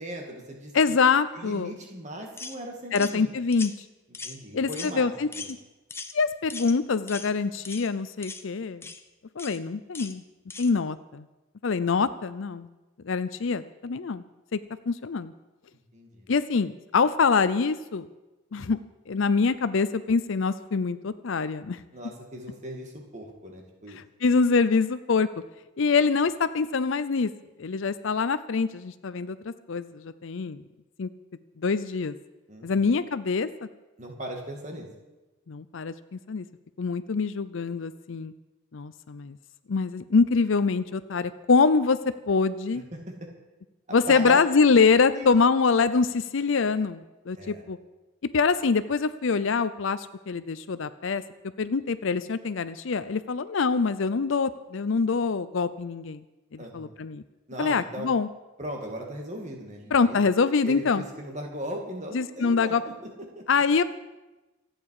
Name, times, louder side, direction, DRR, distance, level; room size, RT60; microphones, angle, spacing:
voice 1, 0.0-1.0 1.3-3.3 4.1-5.5 15.9-16.3 21.9-24.0 32.5-32.8 34.0-34.9 42.9-43.1 43.9-44.4 45.0-45.3 47.4-47.6 56.6-56.9 57.5-58.1 58.6-60.2 60.6-62.9 63.3-63.4, right 1 dB, 35° right, 1 dB, 2.3 m, -38 dB
voice 2, 0.7-1.7 2.9-3.7 4.5-5.3 6.1-8.8 9.4-10.2 10.6-11.2 11.6-12.7 13.0-14.2 14.5-14.6 14.9-15.3 16.3-18.1 18.5-18.8 19.1-21.8 24.0-25.3 25.8-27.3 27.6-30.6 31.0-31.1 31.6-32.2 32.6-33.5 35.5-36.5 36.8-38.3 38.7-39.4 39.7-42.0 42.3-42.8 43.9-47.8 48.3-51.2 51.6-56.2 56.5-57.2 57.6-58.3 59.9-61.0 62.1-62.8 63.5-63.8, left 4 dB, 65° left, 13 dB, 0.5 m, -24 dB
sound 1, 2.4-2.6 3.0-3.2 3.5-3.7 4.1-4.4 4.7-4.9 5.3-5.5 5.9-6.1 6.5-6.8 7.1-7.3 7.6-7.9 8.2-8.4 8.8-9.0 9.4-9.6 9.9-10.1 10.5-10.7, left 4 dB, 10° left, 0.7 m, -39 dB
26.5 x 9.1 x 4.9 m, 1.1 s
head